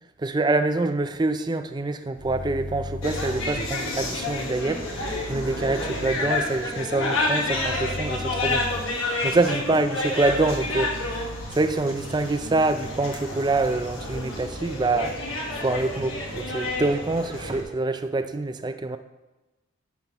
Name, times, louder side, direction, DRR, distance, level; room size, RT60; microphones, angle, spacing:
voice 1, 0.2-8.7 9.2-10.9 11.5-15.1 15.5-19.0, right 2 dB, 20° right, 9 dB, 0.3 m, -25 dB
sound 1, 2.1-3.5 4.8-6.2 7.5-8.8 10.2-11.5, left 1 dB, 5° left, 1.1 m, -36 dB
sound 2, 3.0-17.6, left 2 dB, 75° left, 1.5 m, -30 dB
10.5 x 6.2 x 3.0 m, 1.1 s
head